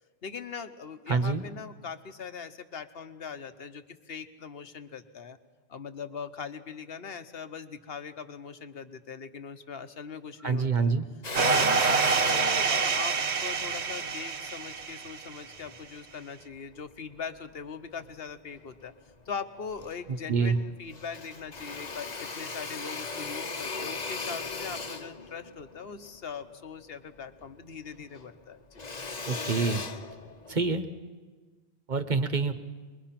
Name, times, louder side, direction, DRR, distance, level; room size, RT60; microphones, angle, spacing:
voice 1, 0.2-5.4 5.7-10.9 11.4-18.9 19.3-28.8, left 6 dB, 65° left, 9 dB, 1.3 m, -40 dB
voice 2, 1.1-1.4 10.4-11.1 20.3-20.6 29.3-29.8 30.5-30.9 31.9-32.5, right 4 dB, 45° right, 9 dB, 1.1 m, -26 dB
Drill, 11.2-15.8 16.3-17.5 18.0-18.9 19.3-19.4 19.6-20.6 20.9-27.6 27.9-30.7, left 4 dB, 40° left, 1.1 m, -38 dB
sound 1, 11.3-15.4, right 5 dB, 80° right, 1.2 m, -27 dB
24.5 x 21.5 x 5.9 m, 1.4 s
omnidirectional pair, 1.1 m